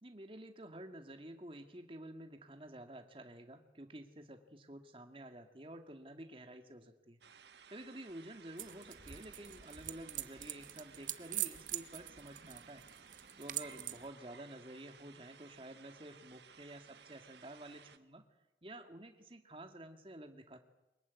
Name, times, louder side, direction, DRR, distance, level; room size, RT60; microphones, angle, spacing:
voice 1, 0.0-7.2 7.7-12.8 13.4-18.2 18.6-20.6, right 1 dB, 30° right, 6 dB, 2.0 m, -51 dB
sound 1, 7.2-18.0, right 6 dB, 80° right, 1.4 m, -59 dB
sound 2, 8.6-14.1, right 12 dB, 45° right, 1.1 m, -44 dB
23.5 x 21.5 x 9.5 m, 0.99 s
head